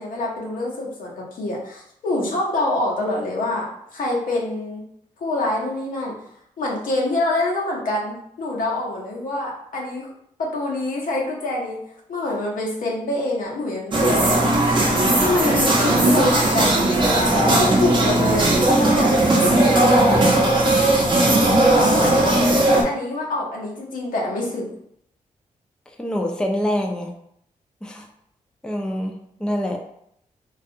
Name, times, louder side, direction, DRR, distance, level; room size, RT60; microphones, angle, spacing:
voice 1, 0.0-3.6 3.9-4.8 5.2-6.1 6.6-10.1 10.4-11.8 12.1-16.7 17.6-19.1 19.5-20.6 21.7-24.7, left 2 dB, 75° left, -3 dB, 0.8 m, -26 dB
sound 1, 13.9-22.8, right 1 dB, 35° right, 0.7 m, -17 dB
voice 2, 26.0-27.1 27.8-28.1 28.6-29.8, equal, 5° left, 1 dB, 0.4 m, -25 dB
2.3 x 2.3 x 2.7 m, 0.71 s
cardioid pair, 60°, 14 cm